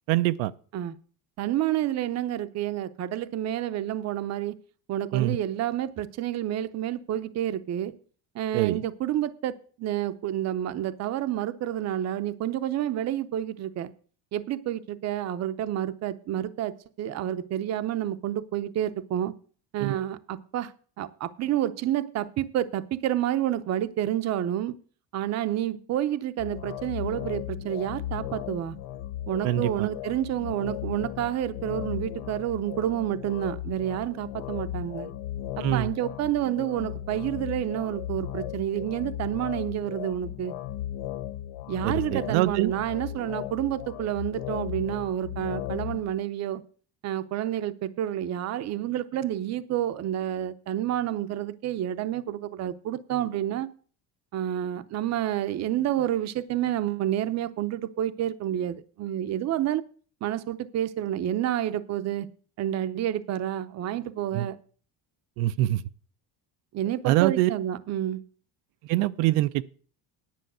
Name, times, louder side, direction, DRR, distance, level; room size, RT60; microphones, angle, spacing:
voice 1, 0.1-0.5 5.1-5.4 8.5-8.8 19.8-20.0 29.4-29.9 35.6-35.9 41.8-42.7 64.3-64.5 65.4-65.8 67.0-67.5 68.9-69.6, right 16 dB, 90° right, 0.6 m, -24 dB
voice 2, 1.4-4.5 4.9-7.9 8.3-13.9 14.3-19.3 19.7-20.7 21.0-24.7 25.1-28.8 29.3-35.1 35.6-40.5 41.7-46.6 47.0-53.7 54.3-59.8 60.2-62.3 62.6-64.6 66.7-68.2, right 12 dB, 40° right, 0.6 m, -29 dB
sound 1, 26.4-46.0, left 12 dB, 70° left, 0.9 m, -36 dB
10.5 x 5.7 x 7.8 m
cardioid pair, 155°, 43 cm